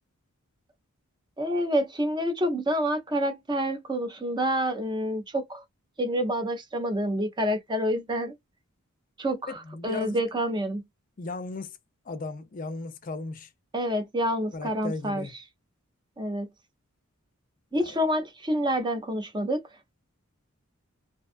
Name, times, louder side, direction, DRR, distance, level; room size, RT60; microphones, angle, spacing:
voice 1, 1.4-5.6 6.0-8.3 9.2-10.8 13.7-15.2 16.2-16.5 17.7-19.6, equal, 20° right, 0.5 m, -28 dB
voice 2, 9.6-10.2 11.2-11.8 12.1-13.5 14.5-15.3 17.7-18.0, left 3 dB, 35° left, 0.5 m, -36 dB
2.5 x 2.3 x 2.4 m
head